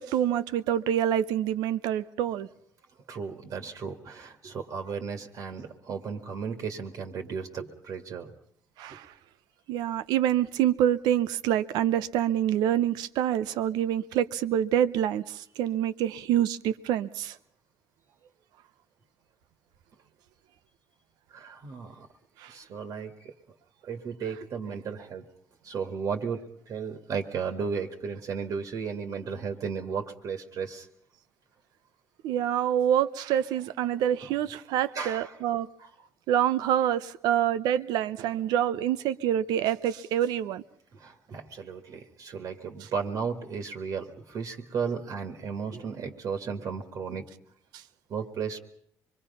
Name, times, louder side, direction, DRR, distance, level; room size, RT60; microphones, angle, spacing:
voice 1, 0.0-2.5 8.8-9.1 9.7-17.4 22.4-22.5 32.2-35.7 36.3-40.6, right 10 dB, 85° right, 0.8 m, -26 dB
voice 2, 3.1-8.3 21.3-22.1 22.5-23.3 23.8-25.3 25.6-30.9 34.9-35.3 35.8-35.9 40.9-47.3 48.1-48.6, right 6 dB, 60° right, 1.9 m, -34 dB
25.0 x 21.5 x 5.6 m
cardioid pair, 100°, 7 cm